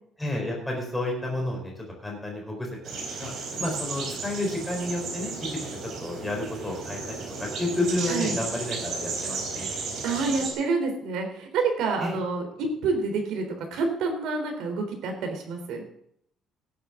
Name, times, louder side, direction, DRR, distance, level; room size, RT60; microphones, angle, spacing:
voice 1, 0.2-1.7 2.0-2.7 3.2-3.3 3.6-5.3 5.8-7.0 7.4-9.7 12.0-12.2, left 1 dB, 5° left, -1 dB, 4.4 m, -30 dB
sound 1, 2.8-10.5, right 4 dB, 50° right, 3.9 m, -34 dB
voice 2, 10.0-13.4 13.7-15.8, right 4 dB, 75° right, 3 dB, 3.7 m, -28 dB
17.0 x 9.8 x 3.8 m, 0.69 s
cardioid pair, 175°, 0 cm